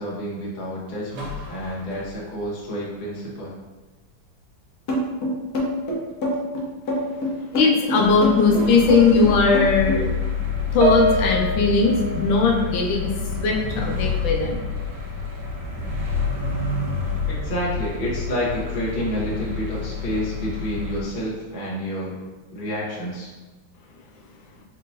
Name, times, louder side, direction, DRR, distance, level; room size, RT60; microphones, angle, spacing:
voice 1, 0.0-3.5 17.3-22.2 22.5-23.3, equal, 35° left, -6 dB, 0.9 m, -29 dB
sound 1, 1.1-2.4 7.9-21.0, left 4 dB, 85° right, 1.8 m, -28 dB
sound 2, 4.9-10.0, equal, 60° left, 1.2 m, -25 dB
voice 2, 7.5-10.1 10.7-14.6, left 4 dB, 80° left, 0 dB, 1.4 m, -19 dB
Piano, 10.8-13.5 13.7-14.0 14.8-14.9, right 1 dB, 65° right, 1.0 m, -27 dB
4.4 x 3.8 x 2.5 m, 1.2 s
omnidirectional pair, 2.1 m